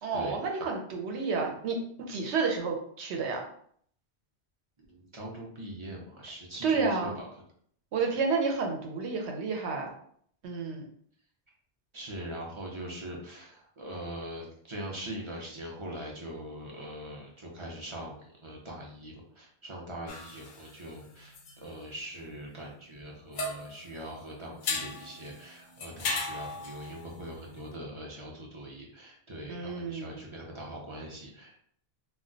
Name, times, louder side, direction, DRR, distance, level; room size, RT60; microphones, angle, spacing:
voice 1, 0.0-1.8 2.1-3.4 6.6-7.2 7.9-9.9 10.4-10.8 29.5-30.2, right 4 dB, 80° right, 1 dB, 0.9 m, -30 dB
voice 2, 4.9-7.3 8.1-8.2 11.9-31.6, right 1 dB, 35° right, -2 dB, 0.5 m, -42 dB
sound 1, 20.1-23.0 23.3-27.7, left 3 dB, 60° left, 0.6 m, -38 dB
2.2 x 2.2 x 3.7 m, 0.62 s
omnidirectional pair, 1.1 m